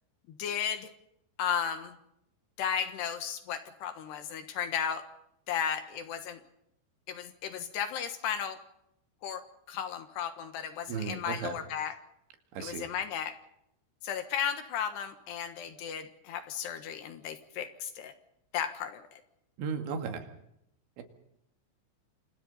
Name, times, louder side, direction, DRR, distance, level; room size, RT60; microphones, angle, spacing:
voice 1, 0.3-0.9 1.4-2.0 2.6-5.1 5.5-6.4 7.1-8.6 9.2-11.9 12.6-13.4 14.0-18.1 18.5-19.2, left 8 dB, 70° left, 8 dB, 3.2 m, -34 dB
voice 2, 10.9-11.6 12.5-12.9 19.6-20.3 21.0-21.1, right 6 dB, 75° right, 5 dB, 4.5 m, -35 dB
27.5 x 27.0 x 4.2 m, 0.80 s
omnidirectional pair, 5.4 m